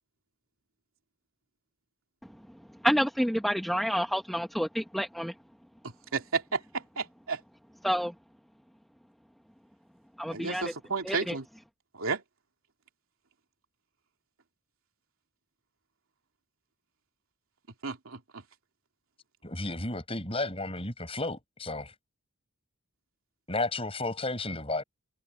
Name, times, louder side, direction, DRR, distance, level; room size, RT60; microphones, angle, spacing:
voice 1, 2.8-5.3 7.8-8.1 10.2-10.7 11.0-11.3, equal, ahead, 1.7 m, -28 dB
voice 2, 6.1-7.4 10.3-11.4 11.9-12.2 17.8-18.4, right 4 dB, 80° right, 2.8 m, -32 dB
voice 3, 19.4-21.9 23.5-24.8, left 2 dB, 25° left, 7.7 m, -33 dB
head